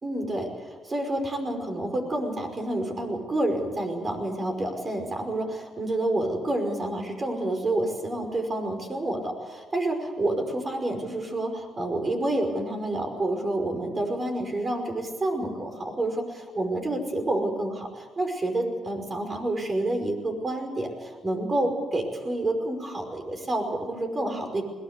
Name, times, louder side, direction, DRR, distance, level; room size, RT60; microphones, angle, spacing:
voice 1, 0.0-24.6, right 1 dB, 30° right, 5 dB, 5.4 m, -29 dB
21.5 x 19.0 x 8.3 m, 1.4 s
cardioid pair, 90°, 0 cm